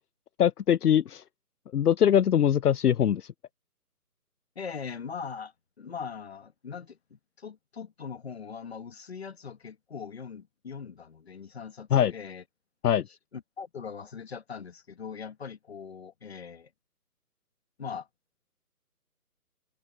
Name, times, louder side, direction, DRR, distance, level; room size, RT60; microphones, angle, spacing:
voice 1, 0.4-1.2 1.7-3.3 11.9-12.1 12.8-13.1, left 9 dB, 75° left, 0.6 m, -22 dB
voice 2, 4.6-12.4 13.3-16.7 17.8-18.1, left 6 dB, 40° left, 1.9 m, -41 dB
hypercardioid pair, 170°, 47 cm